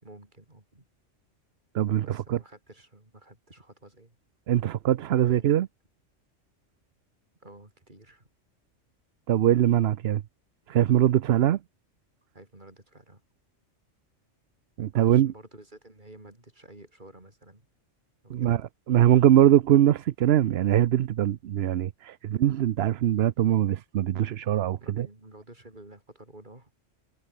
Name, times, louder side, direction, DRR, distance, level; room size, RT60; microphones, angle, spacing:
voice 1, 0.0-0.8 2.0-4.2 5.1-5.7 7.4-8.3 12.3-13.2 15.0-17.7 18.2-18.6 24.8-26.7, right 1 dB, 40° right, 4.7 m, -51 dB
voice 2, 1.7-2.4 4.5-5.7 9.3-10.2 10.7-11.6 14.8-15.3 18.3-18.6 18.9-25.1, right 11 dB, 60° right, 0.8 m, -22 dB
omnidirectional pair, 1.3 m